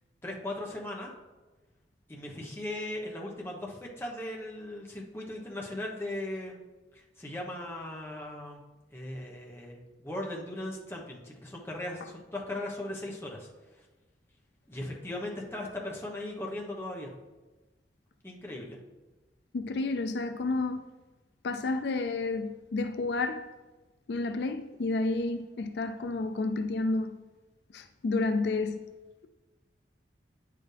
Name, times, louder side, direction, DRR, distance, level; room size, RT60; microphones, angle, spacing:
voice 1, 0.2-1.1 2.1-6.6 6.9-8.6 8.9-13.5 14.7-17.1 18.2-18.8, left 1 dB, 15° left, 1.1 m, -38 dB
voice 2, 19.5-20.8 21.4-23.5 24.1-27.2 27.7-28.9, left 3 dB, 65° left, 0.4 m, -30 dB
9.4 x 6.8 x 3.4 m
head